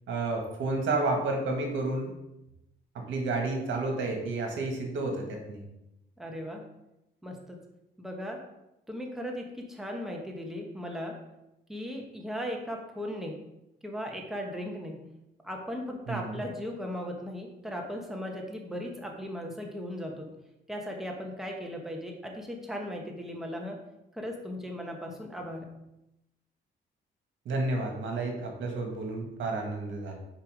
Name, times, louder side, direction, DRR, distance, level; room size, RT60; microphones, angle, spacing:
voice 1, 0.1-2.1 2.9-5.6 16.1-16.4 27.4-30.2, right 2 dB, 75° right, 2 dB, 1.7 m, -31 dB
voice 2, 6.2-6.6 7.2-7.6 8.0-8.4 8.9-11.1 11.7-13.4 13.8-15.0 15.4-20.3 20.7-23.8 24.1-25.7, equal, ahead, 1 dB, 1.2 m, -37 dB
5.6 x 4.8 x 4.8 m, 0.89 s
cardioid pair, 90°, 20 cm